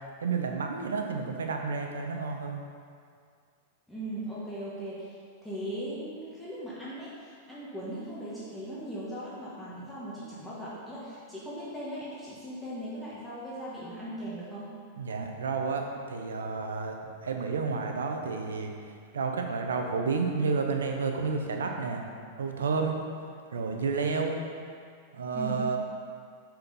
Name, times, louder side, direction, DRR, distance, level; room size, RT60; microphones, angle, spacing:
voice 1, 0.2-2.6 15.0-17.0 17.2-18.7 19.1-22.1 22.4-23.0 23.5-24.4 25.1-25.8, right 4 dB, 85° right, 3 dB, 0.8 m, -30 dB
voice 2, 3.9-5.2 5.4-14.7 25.3-25.6, right 1 dB, 5° left, -10 dB, 1.6 m, -39 dB
5.8 x 4.4 x 5.3 m, 2.2 s
hypercardioid pair, 110°, 0 cm